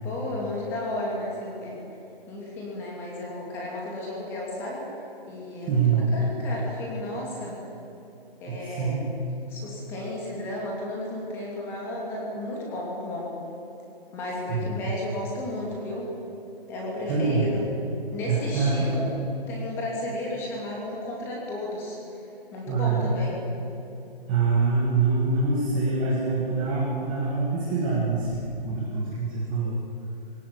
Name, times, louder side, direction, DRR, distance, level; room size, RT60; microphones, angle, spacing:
voice 1, 0.0-1.8 2.3-4.8 5.3-7.6 8.4-9.0 9.5-13.3 14.1-16.1 16.7-17.6 18.1-19.0 19.5-22.0 22.5-23.4, left 1 dB, 10° left, -3 dB, 2.7 m, -33 dB
voice 2, 5.7-6.0 8.5-9.0 14.5-14.9 17.1-17.5 18.3-19.0 22.7-23.1 24.3-28.3 28.6-29.7, right 4 dB, 10° right, -6 dB, 1.5 m, -25 dB
22.0 x 17.5 x 9.5 m, 2.9 s
hypercardioid pair, 175°, 30 cm